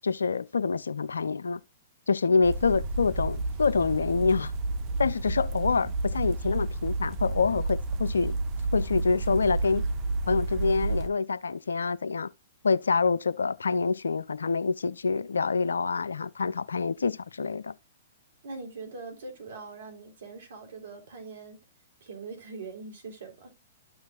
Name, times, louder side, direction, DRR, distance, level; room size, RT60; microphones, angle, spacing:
voice 1, 0.0-1.6 2.1-4.5 5.0-8.4 8.7-9.8 10.3-12.3 12.6-17.7, left 4 dB, 80° left, 0.5 m, -26 dB
sound 1, 2.4-11.1, right 2 dB, 35° right, 1.1 m, -30 dB
voice 2, 18.4-21.6 22.0-23.5, right 4 dB, 65° right, 3.5 m, -42 dB
13.0 x 5.6 x 2.4 m
figure-of-eight pair, 115°, 0 cm